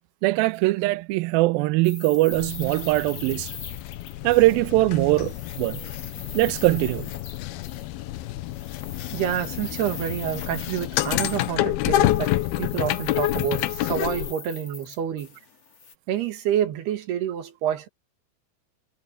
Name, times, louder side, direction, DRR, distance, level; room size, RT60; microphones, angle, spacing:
voice 1, 0.2-3.5 4.2-5.8 6.3-7.1, right 19 dB, 90° right, 2.1 m, -21 dB
sound 1, 1.8-4.8 5.1-7.9 8.5-11.7 12.0-15.9, left 5 dB, 35° left, 4.5 m, -41 dB
sound 2, 2.3-14.3, left 15 dB, 80° left, 2.5 m, -28 dB
voice 2, 9.1-15.4 16.1-17.9, right 10 dB, 70° right, 3.9 m, -28 dB
omnidirectional pair, 4.9 m